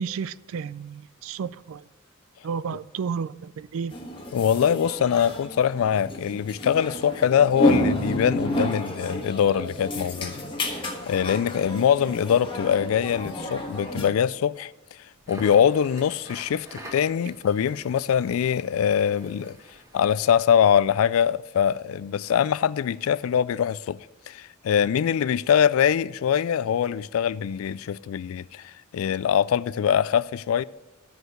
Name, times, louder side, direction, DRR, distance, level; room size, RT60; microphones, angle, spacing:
voice 1, 0.0-1.8 2.4-3.9, right 6 dB, 75° right, 0.3 m, -32 dB
Brazilian Family Restaurant, 3.9-14.1, equal, 25° left, 1.3 m, -30 dB
voice 2, 4.3-14.7 15.3-19.6 19.9-24.0 24.3-30.6, left 8 dB, 85° left, 0.3 m, -23 dB
Crackle, 15.1-20.4, right 1 dB, 15° right, 1.4 m, -45 dB
13.0 x 4.8 x 6.4 m
head